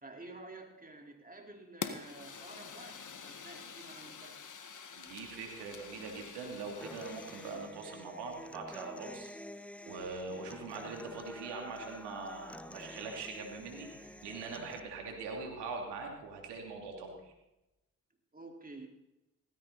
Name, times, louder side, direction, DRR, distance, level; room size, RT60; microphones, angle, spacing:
voice 1, 0.0-4.4 18.3-18.9, right 2 dB, 20° right, 2 dB, 4.1 m, -50 dB
Fire, 1.8-7.7, left 6 dB, 50° left, 1.8 m, -46 dB
voice 2, 5.0-9.3 9.8-17.3, right 4 dB, 85° right, 2 dB, 3.1 m, -42 dB
Human voice / Acoustic guitar, 6.8-14.8, left 1 dB, 5° left, 0.9 m, -49 dB
17.0 x 15.0 x 4.1 m, 0.95 s
supercardioid pair, 45°, 39 cm